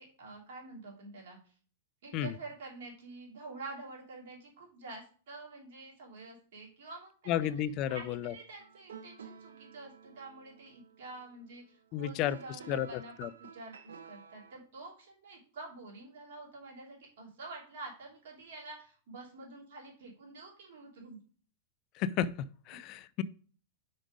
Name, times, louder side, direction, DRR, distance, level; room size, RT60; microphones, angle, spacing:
voice 1, 0.0-1.4 2.0-7.5 7.9-13.1 13.4-21.2, right 3 dB, 70° right, -2 dB, 3.0 m, -48 dB
voice 2, 7.3-8.3 11.9-12.4 12.7-13.3 22.0-23.2, left 10 dB, 45° left, 17 dB, 0.4 m, -33 dB
sound 1, 8.6-14.6, right 7 dB, 85° right, 0.8 m, -51 dB
5.3 x 5.1 x 4.9 m, 0.42 s
hypercardioid pair, 120°, 0 cm